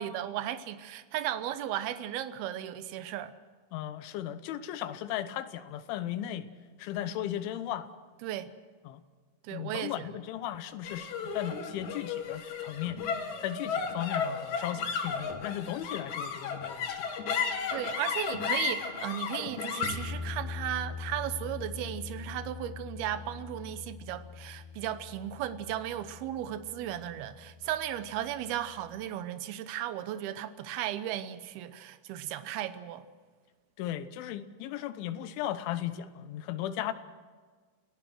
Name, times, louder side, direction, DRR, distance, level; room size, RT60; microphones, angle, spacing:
voice 1, 0.0-3.3 8.2-8.5 9.4-10.1 17.7-33.1, right 11 dB, 75° right, 2.5 m, -35 dB
voice 2, 3.7-6.5 6.8-7.9 8.9-9.0 9.5-17.2 33.8-36.9, left 12 dB, 85° left, 3.4 m, -36 dB
sound 1, 10.8-27.4, left 6 dB, 50° left, 2.6 m, -36 dB
29.0 x 17.0 x 6.2 m
omnidirectional pair, 5.3 m